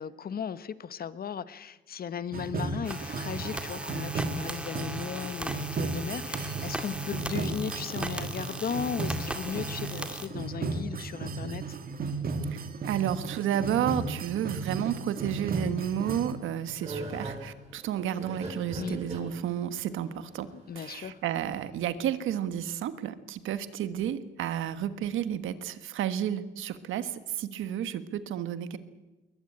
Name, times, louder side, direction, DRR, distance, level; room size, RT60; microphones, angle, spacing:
voice 1, 0.0-11.8 18.8-19.0 20.7-21.2, left 7 dB, 50° left, 15 dB, 1.2 m, -36 dB
sound 1, 2.3-16.3, right 4 dB, 50° right, 2.6 m, -35 dB
sound 2, 2.8-10.3, right 1 dB, 5° right, 2.3 m, -38 dB
voice 2, 12.5-20.5 20.7-28.8, right 10 dB, 80° right, 12 dB, 1.5 m, -31 dB
sound 3, 16.3-21.3, right 2 dB, 35° right, 7.6 m, -40 dB
21.5 x 20.5 x 8.7 m, 1.2 s
cardioid pair, 90°, 20 cm